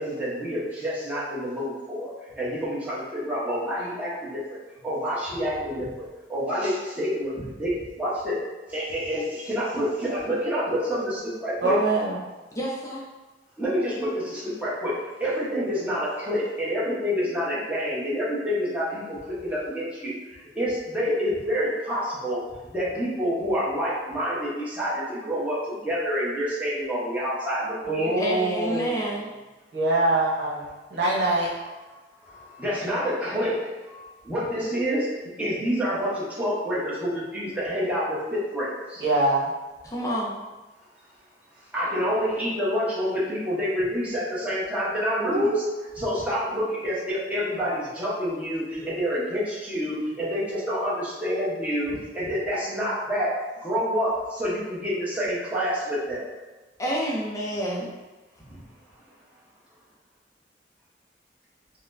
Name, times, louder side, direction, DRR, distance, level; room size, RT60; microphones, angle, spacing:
voice 1, 0.0-2.1 2.4-4.4 4.8-7.7 8.0-8.4 8.7-11.8 13.6-14.9 15.2-19.2 19.4-20.1 20.5-22.4 22.7-28.1 32.3-33.6 33.9-35.1 35.4-39.0 41.7-45.5 46.0-53.3 53.6-54.1 54.4-56.2, equal, 10° right, -9 dB, 0.9 m, -28 dB
voice 2, 11.6-12.2 27.9-29.2 29.7-30.6 30.9-31.5 39.0-39.5 45.2-46.4, right 2 dB, 80° right, -5 dB, 0.9 m, -24 dB
voice 3, 12.6-13.0 28.2-29.3 39.9-40.4 56.8-57.9, equal, 20° left, -4 dB, 0.5 m, -28 dB
4.1 x 2.1 x 2.6 m, 1.2 s
head